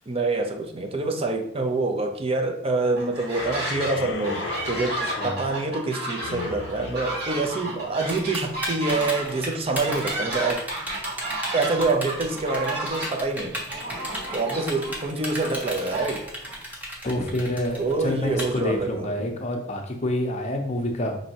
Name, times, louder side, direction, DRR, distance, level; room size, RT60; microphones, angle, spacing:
voice 1, 0.1-10.7 11.5-13.6 14.3-16.3 17.8-19.3, right 3 dB, 30° right, 4 dB, 0.5 m, -26 dB
sound 1, 3.0-3.9 4.2-16.5, right 2 dB, 60° right, 1.5 m, -33 dB
sound 2, 3.3-8.1, left 5 dB, 85° left, 0.4 m, -36 dB
voice 2, 5.0-5.4 17.0-21.2, left 1 dB, 40° left, 3 dB, 0.6 m, -28 dB
Typing, 8.1-18.4, equal, 10° right, 0.8 m, -34 dB
5.1 x 2.7 x 2.8 m, 0.70 s
head